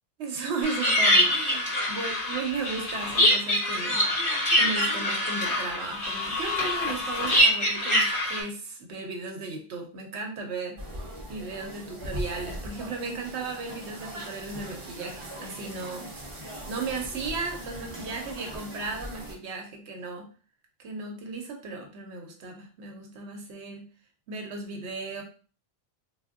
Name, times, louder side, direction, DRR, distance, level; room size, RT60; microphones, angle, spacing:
voice 1, 0.2-4.1 4.5-10.8 11.3-16.1 16.7-20.3 20.8-23.9 24.3-25.2, right 4 dB, 85° right, 2 dB, 0.9 m, -35 dB
sound 1, 0.6-8.4, left 1 dB, 55° left, 1.4 m, -24 dB
sound 2, 10.8-19.3, equal, 30° right, 0.7 m, -40 dB
3.4 x 2.2 x 2.4 m, 0.39 s
omnidirectional pair, 1.1 m